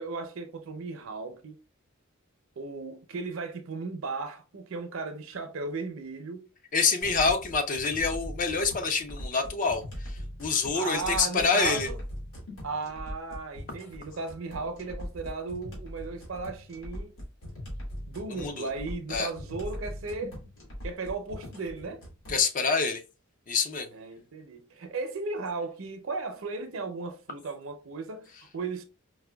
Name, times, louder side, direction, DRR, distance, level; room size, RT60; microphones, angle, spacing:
voice 1, 0.0-1.6 2.6-6.4 10.7-12.0 12.6-17.1 18.1-20.4 20.8-22.0 23.9-28.8, right 3 dB, 65° right, 0.6 m, -36 dB
voice 2, 6.7-11.9 18.4-18.7 19.1-19.3 22.3-23.0 23.5-23.9, left 4 dB, 40° left, 0.4 m, -27 dB
sound 1, 7.0-22.4, equal, 70° left, 1.6 m, -41 dB
4.7 x 2.2 x 2.2 m
head